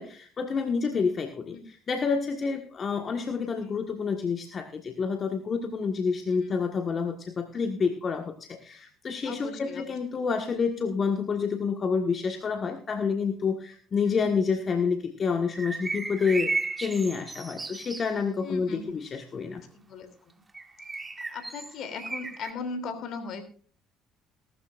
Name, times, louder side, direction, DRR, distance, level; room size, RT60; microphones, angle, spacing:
voice 1, 0.0-16.5 16.8-19.6, left 5 dB, 40° left, 5 dB, 1.5 m, -28 dB
voice 2, 9.2-9.9 14.0-14.1 18.4-18.9 19.7-20.3 21.3-23.5, left 4 dB, 60° left, 8 dB, 3.1 m, -38 dB
sound 1, 15.5-18.1 20.5-22.5, right 3 dB, 20° right, 1.5 m, -34 dB
18.5 x 13.0 x 2.5 m, 0.43 s
hypercardioid pair, 65°, 0 cm